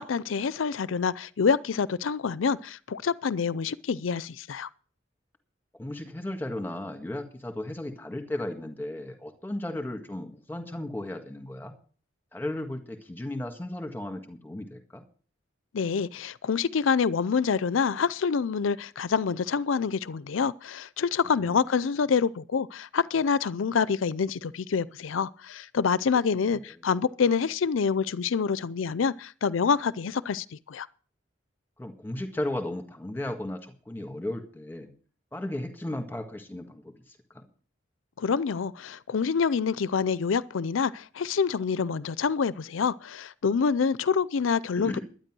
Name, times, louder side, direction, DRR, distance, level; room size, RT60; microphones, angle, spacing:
voice 1, 0.0-4.7 15.7-30.9 38.2-44.9, left 6 dB, 85° left, 0.5 m, -27 dB
voice 2, 5.8-11.7 12.3-15.0 21.4-21.6 26.4-26.6 31.8-34.9 35.3-37.4 44.8-45.0, left 1 dB, 10° left, 1.7 m, -35 dB
12.0 x 9.7 x 6.1 m
head